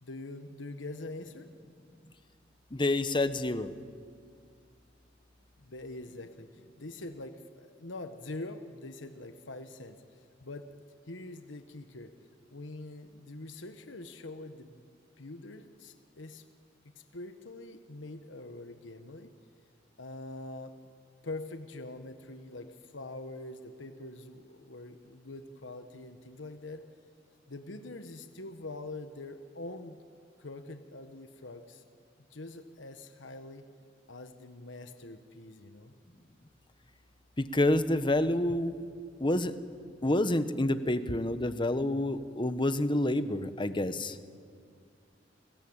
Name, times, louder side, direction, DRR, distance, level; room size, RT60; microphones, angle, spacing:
voice 1, 0.0-1.5 5.6-10.7 11.1-12.1 12.5-14.8 15.2-16.4 16.9-19.3 20.0-20.7 21.2-26.9 27.5-30.0 30.4-31.8 32.3-33.6 34.1-35.9, left 2 dB, 80° left, 8 dB, 1.4 m, -44 dB
voice 2, 2.7-3.7 37.4-38.7 39.2-39.5 40.0-44.2, left 1 dB, 25° left, 11 dB, 1.1 m, -28 dB
30.0 x 21.0 x 8.8 m, 2.1 s
head